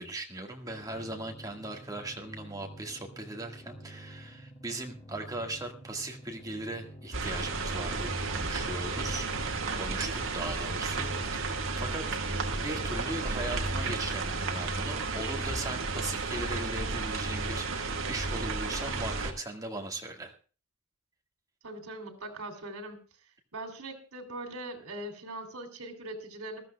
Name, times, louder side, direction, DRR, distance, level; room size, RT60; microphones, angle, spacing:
voice 1, 0.0-12.0 12.5-20.3, right 2 dB, 15° right, 2 dB, 1.8 m, -39 dB
sound 1, 0.6-13.9, right 1 dB, 25° left, 2.2 m, -49 dB
sound 2, 7.1-19.3, right 3 dB, 65° right, 1.8 m, -32 dB
voice 2, 21.6-23.0 23.5-26.7, right 1 dB, 85° right, 6 dB, 3.2 m, -41 dB
20.5 x 14.0 x 2.3 m, 0.36 s
head